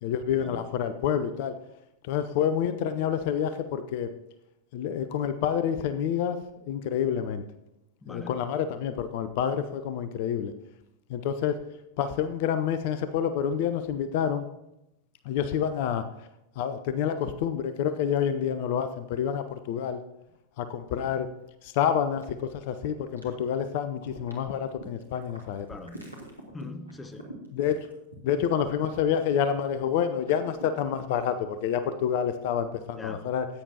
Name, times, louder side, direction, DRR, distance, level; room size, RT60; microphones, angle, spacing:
voice 1, 0.0-1.5 2.1-4.1 4.7-6.4 6.6-7.4 8.1-10.5 11.1-11.6 12.0-14.4 15.3-16.1 16.6-20.0 20.6-21.3 21.6-25.7 27.5-27.8 28.2-33.5, left 8 dB, 50° left, 11 dB, 0.6 m, -28 dB
voice 2, 8.0-8.3 21.0-21.1 25.7-26.0 26.5-27.3 33.0-33.2, left 3 dB, 15° left, 10 dB, 0.8 m, -42 dB
sound 1, 18.0-18.9 19.1-19.2 19.7-20.4 20.9-21.0 21.4-21.5 22.2-22.7 23.2-23.7 23.9-29.6 29.9-30.7, right 1 dB, 90° right, 2.0 m, -47 dB
14.0 x 9.1 x 2.8 m, 0.86 s
figure-of-eight pair, 90°, 0 cm